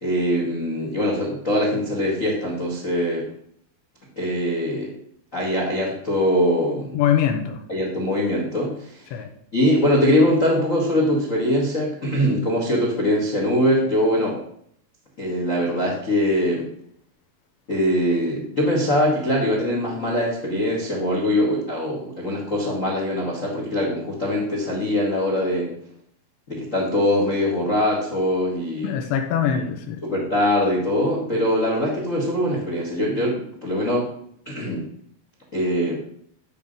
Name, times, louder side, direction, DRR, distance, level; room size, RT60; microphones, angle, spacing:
voice 1, 0.0-3.3 4.1-5.0 5.3-7.0 7.7-9.1 9.5-14.4 15.2-16.7 17.7-25.7 26.5-28.9 29.5-29.6 30.0-34.1 34.4-34.9 35.5-36.0, left 1 dB, 50° left, -1 dB, 0.9 m, -22 dB
voice 2, 6.9-7.6 9.1-9.3 28.8-30.0, left 9 dB, 80° left, 5 dB, 3.2 m, -23 dB
12.5 x 5.3 x 5.4 m, 0.68 s
omnidirectional pair, 5.1 m